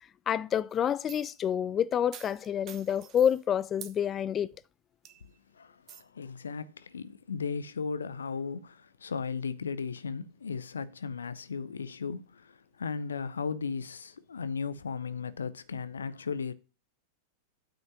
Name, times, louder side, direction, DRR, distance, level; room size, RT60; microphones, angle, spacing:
voice 1, 0.3-4.5, left 9 dB, 25° left, 0.4 m, -28 dB
sound 1, 0.7-1.4 2.1-3.4 3.8-4.0 4.5-4.6 5.1-5.4 5.9-6.0, right 10 dB, 35° right, 0.9 m, -48 dB
voice 2, 5.6-16.5, left 5 dB, 70° left, 0.6 m, -36 dB
8.9 x 5.3 x 5.9 m
figure-of-eight pair, 90°, 0 cm